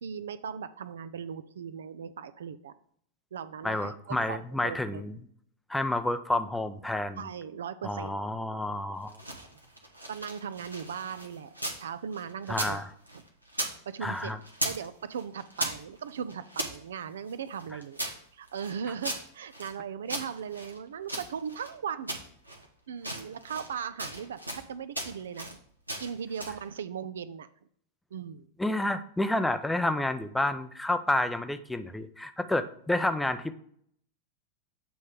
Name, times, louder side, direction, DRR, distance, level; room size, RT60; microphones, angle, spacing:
voice 1, 0.0-2.7 3.3-5.0 7.2-8.2 10.1-12.8 13.5-14.4 14.6-18.0 18.3-22.2 22.9-25.6 26.0-27.5 28.1-28.5, right 7 dB, 65° right, 14 dB, 0.3 m, -38 dB
voice 2, 3.6-5.2 5.7-7.3 7.8-9.2 12.5-12.9 14.0-14.4 28.6-33.5, left 1 dB, 5° left, 10 dB, 0.5 m, -29 dB
sound 1, 9.0-11.8 12.1-13.8 14.0-14.9 15.1-16.8 17.3-19.8 20.1-21.7 22.1-22.7 23.0-23.7 24.0-24.7 24.9-25.6 25.9-26.6, right 1 dB, 85° right, 0.9 m, -37 dB
7.7 x 3.1 x 5.1 m, 0.66 s
figure-of-eight pair, 90°, 0 cm